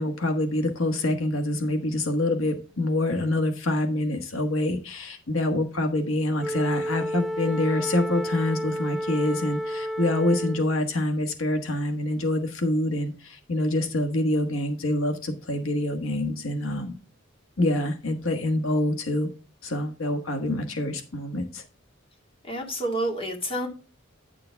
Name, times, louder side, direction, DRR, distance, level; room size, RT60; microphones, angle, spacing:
voice 1, 0.0-16.9 17.6-19.3 19.6-21.6, left 1 dB, 85° left, 7 dB, 1.4 m, -26 dB
Wind instrument woodwind instrument, 6.4-10.8, equal, ahead, 0.7 m, -31 dB
voice 2, 22.4-23.7, right 1 dB, 30° left, 3 dB, 2.1 m, -29 dB
10.5 x 6.8 x 3.4 m, 0.35 s
head